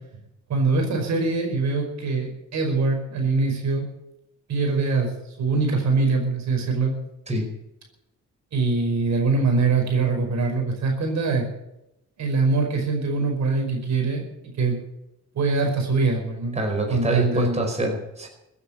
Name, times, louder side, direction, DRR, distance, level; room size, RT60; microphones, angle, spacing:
voice 1, 0.5-3.8 4.5-5.1 5.4-6.9 8.5-11.5 12.2-14.2 14.6-14.8 15.3-16.6 16.9-17.6, right 3 dB, 65° right, 3 dB, 5.3 m, -23 dB
voice 2, 16.5-18.3, right 1 dB, 20° right, 2 dB, 5.1 m, -25 dB
16.0 x 9.7 x 8.7 m, 0.85 s
cardioid pair, 90°, 30 cm